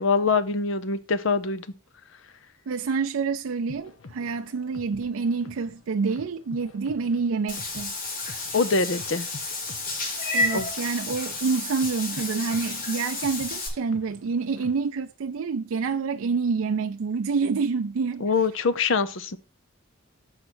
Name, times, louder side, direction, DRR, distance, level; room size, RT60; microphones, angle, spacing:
voice 1, 0.0-1.7 8.5-9.3 10.5-10.7 18.2-19.4, left 4 dB, 70° left, 0.6 m, -24 dB
voice 2, 2.7-7.9 10.3-18.2, right 5 dB, 90° right, 0.4 m, -27 dB
sound 1, 3.7-15.0, left 3 dB, 85° left, 1.0 m, -47 dB
Meow / Water / Bathtub (filling or washing), 7.5-13.7, left 2 dB, 45° left, 1.6 m, -31 dB
6.5 x 4.3 x 6.0 m
head